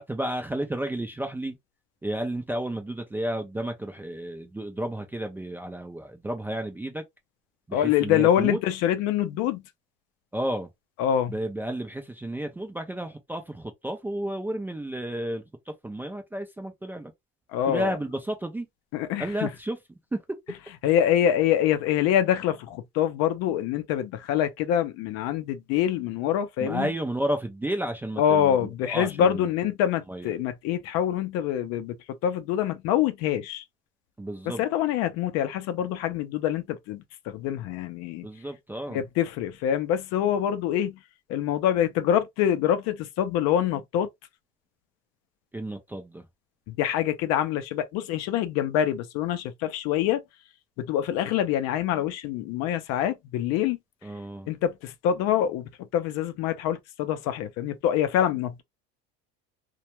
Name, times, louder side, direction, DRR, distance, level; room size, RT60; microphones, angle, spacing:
voice 1, 0.0-1.6 2.0-7.0 7.7-8.6 10.3-10.7 11.3-17.1 17.7-18.7 19.2-19.8 20.1-20.4 26.6-28.6 28.8-29.5 30.1-30.3 34.2-34.6 38.2-39.0 45.5-46.2 54.0-54.5, right 1 dB, 5° right, 0.3 m, -32 dB
voice 2, 7.7-9.6 11.0-11.3 17.5-17.9 18.9-19.5 20.8-26.9 28.2-32.0 32.2-33.6 34.5-38.3 38.9-40.9 41.3-44.1 46.8-50.2 50.8-53.8 54.5-58.6, left 10 dB, 55° left, 0.5 m, -25 dB
2.2 x 2.1 x 2.8 m
supercardioid pair, 115°, 30 cm